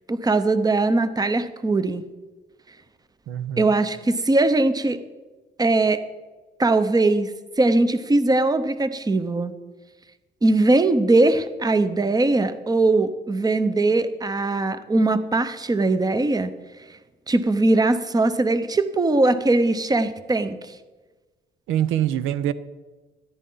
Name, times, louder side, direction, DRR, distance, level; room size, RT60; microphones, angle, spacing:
voice 1, 0.1-2.0 3.6-5.0 5.6-6.0 6.6-7.3 7.6-9.5 10.4-16.5 17.3-20.6, right 2 dB, 20° right, 12 dB, 0.8 m, -20 dB
voice 2, 3.3-3.7 21.7-22.5, right 11 dB, 90° right, 15 dB, 0.6 m, -24 dB
13.5 x 11.0 x 3.9 m, 1.3 s
cardioid pair, 90°, 20 cm